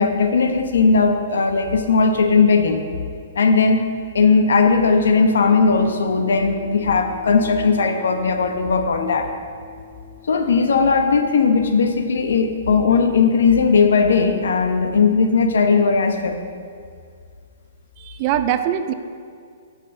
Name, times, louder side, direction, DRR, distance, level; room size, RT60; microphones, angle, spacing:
voice 1, 0.0-2.8 3.3-3.8 4.1-9.3 10.3-16.4, left 4 dB, 90° left, 6 dB, 0.9 m, -17 dB
sound 1, 5.5-15.6, left 5 dB, 30° left, 0.8 m, -44 dB
voice 2, 18.0-18.9, right 10 dB, 25° right, 10 dB, 0.3 m, -22 dB
6.9 x 6.1 x 6.5 m, 2.2 s
hypercardioid pair, 175°, 0 cm